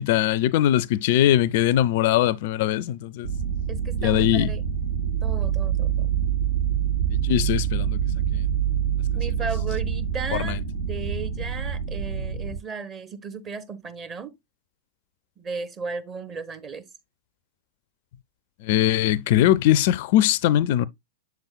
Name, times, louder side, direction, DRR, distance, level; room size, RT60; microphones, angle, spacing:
voice 1, 0.0-3.3 4.0-4.5 7.1-8.0 8.3-8.4 10.4-10.6 18.6-20.9, left 12 dB, 50° left, 0.4 m, -21 dB
sound 1, 3.2-12.6, right 8 dB, 85° right, 2.1 m, -26 dB
voice 2, 3.7-4.6 5.2-6.1 9.1-14.3 15.4-16.9, right 5 dB, 25° right, 1.1 m, -35 dB
7.7 x 6.9 x 2.3 m
figure-of-eight pair, 95°, 0 cm